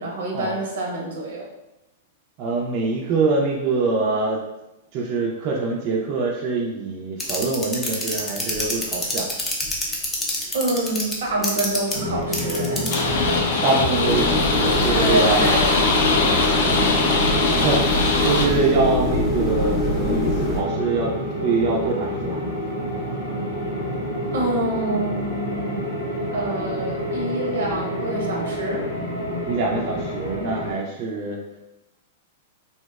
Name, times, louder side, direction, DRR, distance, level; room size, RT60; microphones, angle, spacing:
voice 1, 0.0-1.5 10.5-12.9 14.9-15.8 16.1-16.9 24.3-25.9 26.3-28.9, right 2 dB, 80° right, -1 dB, 0.7 m, -27 dB
voice 2, 2.4-4.4 4.9-9.3 13.6-15.4 17.5-22.4 29.5-31.4, right 3 dB, 45° right, -2 dB, 0.4 m, -24 dB
sound 1, 7.2-13.1 14.1-20.6, left 1 dB, 15° left, 0.5 m, -25 dB
sound 2, 11.9-30.7, equal, 90° left, 0.8 m, -28 dB
sound 3, 12.9-18.5, left 3 dB, 70° left, 0.4 m, -22 dB
2.7 x 2.0 x 2.2 m, 0.93 s
hypercardioid pair, 130°, 0 cm